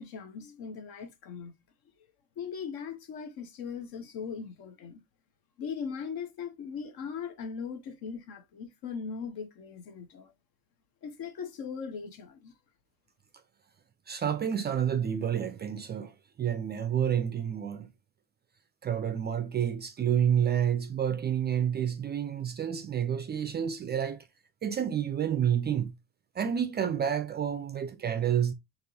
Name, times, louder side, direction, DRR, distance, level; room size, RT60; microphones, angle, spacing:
voice 1, 0.0-1.5 2.4-5.0 5.6-10.3 11.0-12.5, left 6 dB, 60° left, 0.9 m, -39 dB
voice 2, 14.1-17.9 18.8-24.3 24.6-25.9 26.3-28.5, right 9 dB, 25° right, 0.3 m, -29 dB
4.4 x 3.0 x 2.6 m
cardioid pair, 115°, 40 cm